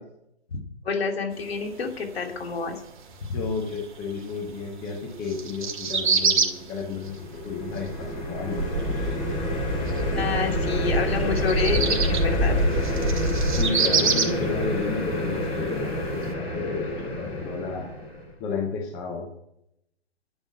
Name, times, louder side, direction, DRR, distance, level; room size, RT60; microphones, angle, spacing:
voice 1, 0.8-2.8 3.3-3.4 10.1-12.6, left 5 dB, 60° left, 3 dB, 3.0 m, -28 dB
sound 1, 1.3-16.3, right 5 dB, 45° right, 2.2 m, -29 dB
voice 2, 3.3-9.1 13.5-17.9 18.4-19.3, left 4 dB, 5° left, 1 dB, 0.4 m, -32 dB
sound 2, 6.9-18.3, left 1 dB, 25° left, 5.5 m, -30 dB
sound 3, 8.5-13.7, equal, 20° right, 4.2 m, -26 dB
11.5 x 7.9 x 9.0 m, 0.80 s
figure-of-eight pair, 135°, 34 cm